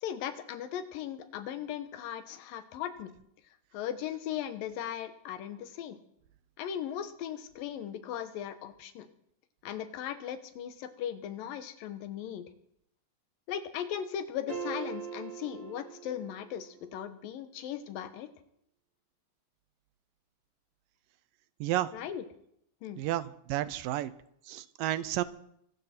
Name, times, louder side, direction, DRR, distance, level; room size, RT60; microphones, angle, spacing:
voice 1, 0.0-3.1 3.7-6.0 6.6-9.1 9.6-12.5 13.5-18.3 21.9-22.2 22.8-23.0, left 10 dB, 85° left, 10 dB, 2.9 m, -38 dB
sound 1, 14.5-16.7, right 6 dB, 40° right, 3.9 m, -41 dB
voice 2, 21.6-21.9 23.0-24.1 24.5-25.2, right 14 dB, 85° right, 15 dB, 2.4 m, -31 dB
24.0 x 12.0 x 4.4 m, 0.73 s
omnidirectional pair, 3.9 m